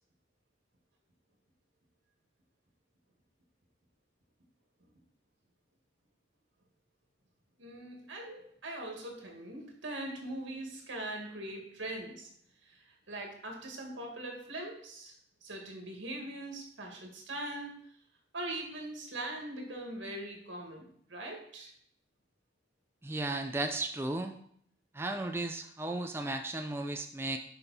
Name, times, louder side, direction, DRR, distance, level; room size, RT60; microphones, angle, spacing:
voice 1, 7.6-12.3 12.6-15.1 15.4-17.8 18.3-21.7, right 1 dB, 75° right, 1 dB, 1.8 m, -41 dB
voice 2, 23.0-24.4 24.9-27.4, right 2 dB, 10° right, 5 dB, 0.3 m, -35 dB
6.9 x 5.4 x 4.1 m, 0.65 s
head